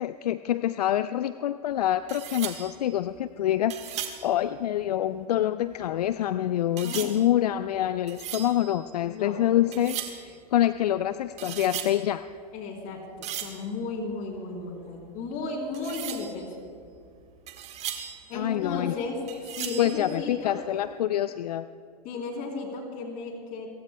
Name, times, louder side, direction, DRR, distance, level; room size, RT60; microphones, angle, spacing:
voice 1, 0.0-12.2 18.3-18.9 19.8-21.7, left 12 dB, 70° left, 13 dB, 0.4 m, -26 dB
sound 1, 1.7-1.8 2.1-5.2 5.6-6.3 6.8-9.4 9.7-10.4 10.8-12.4 12.7-14.7 15.0-15.1 15.3-15.5 15.7-19.0 19.3-20.8, right 10 dB, 30° right, 1.4 m, -38 dB
voice 2, 6.8-7.2 9.1-9.4 12.5-16.7 18.3-19.2 19.5-20.6 22.0-23.7, left 3 dB, 40° left, 1 dB, 3.5 m, -34 dB
29.5 x 15.5 x 2.2 m, 2.3 s
hypercardioid pair, 105°, 21 cm